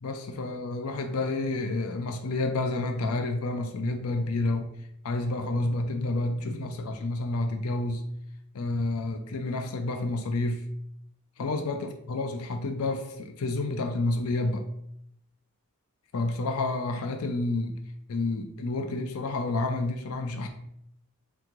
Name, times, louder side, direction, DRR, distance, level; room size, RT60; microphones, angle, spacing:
voice 1, 0.0-4.7 5.0-8.0 8.5-10.6 11.4-14.6 16.1-17.8 18.1-20.5, left 2 dB, 80° left, 5 dB, 0.5 m, -29 dB
3.5 x 3.1 x 3.7 m, 0.75 s
head